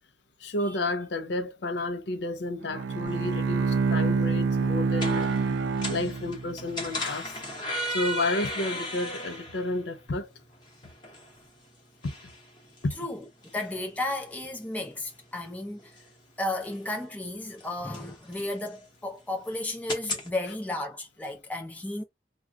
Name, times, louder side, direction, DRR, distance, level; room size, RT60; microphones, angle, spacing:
voice 1, 0.4-5.4 5.9-7.4 7.9-10.3 12.0-12.1 12.8-13.0, left 2 dB, 75° left, 0.6 m, -31 dB
Bowed string instrument, 2.6-6.7, right 4 dB, 90° right, 0.3 m, -27 dB
sound 1, 3.1-20.3, equal, 25° left, 1.0 m, -39 dB
voice 2, 13.0-13.3 13.5-15.9 16.4-22.0, left 1 dB, 10° left, 0.6 m, -33 dB
2.5 x 2.3 x 3.5 m
head